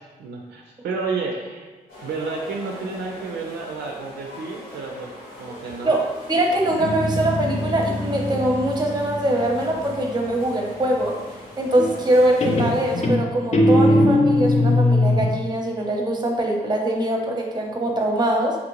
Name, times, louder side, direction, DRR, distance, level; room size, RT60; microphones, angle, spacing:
voice 1, 0.2-1.7 2.0-5.1 5.4-6.0, right 4 dB, 70° right, 0 dB, 0.4 m, -30 dB
sound 1, 1.9-13.0, left 1 dB, 85° left, 1.4 m, -41 dB
voice 2, 5.8-11.2 11.6-18.6, right 1 dB, 25° right, 1 dB, 0.7 m, -22 dB
Guitar, 6.6-10.2 11.8-12.2 12.4-15.3, left 1 dB, 40° left, 0.5 m, -21 dB
3.0 x 2.5 x 3.0 m, 1.3 s
supercardioid pair, 45°, 18 cm